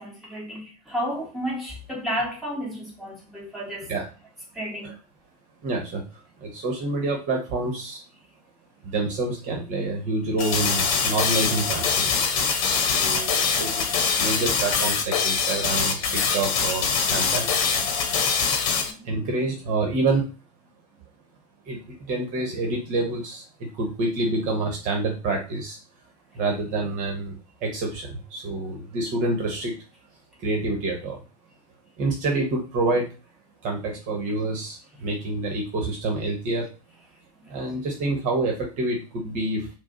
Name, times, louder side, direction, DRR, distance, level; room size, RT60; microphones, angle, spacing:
voice 1, 0.0-3.9 4.5-4.9 18.3-19.0 37.4-37.6, equal, ahead, 2.1 m, -32 dB
voice 2, 5.6-8.0 8.8-12.3 12.9-17.5 19.0-20.3 21.7-25.8 26.3-29.7 30.4-31.2 32.0-33.1 33.6-36.7 37.5-39.7, right 2 dB, 40° right, 1.3 m, -27 dB
sound 1, 10.4-18.9, left 6 dB, 55° left, 1.0 m, -23 dB
4.8 x 2.4 x 4.3 m
figure-of-eight pair, 85°, 20 cm